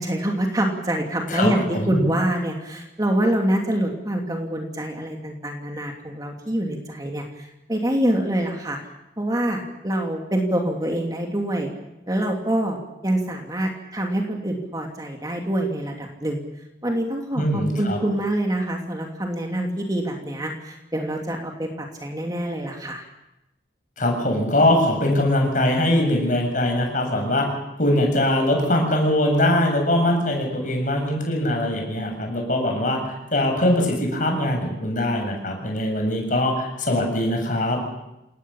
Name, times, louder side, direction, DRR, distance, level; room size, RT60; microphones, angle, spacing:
voice 1, 0.0-8.8 9.2-11.7 12.1-16.4 16.8-23.0, right 1 dB, 20° right, 1 dB, 2.8 m, -25 dB
voice 2, 1.3-1.9 17.4-18.0 24.0-27.5 27.8-33.0 33.3-37.8, left 1 dB, 45° left, 2 dB, 7.3 m, -22 dB
27.5 x 19.0 x 7.3 m, 0.92 s
head